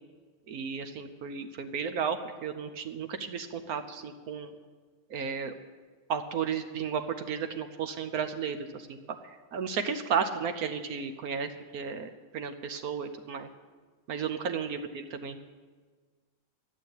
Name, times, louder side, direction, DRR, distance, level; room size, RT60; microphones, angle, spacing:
voice 1, 0.5-4.5 5.1-5.5 6.1-13.5 14.1-15.4, right 6 dB, 80° right, 8 dB, 1.3 m, -34 dB
12.0 x 8.9 x 9.5 m, 1.5 s
omnidirectional pair, 1.5 m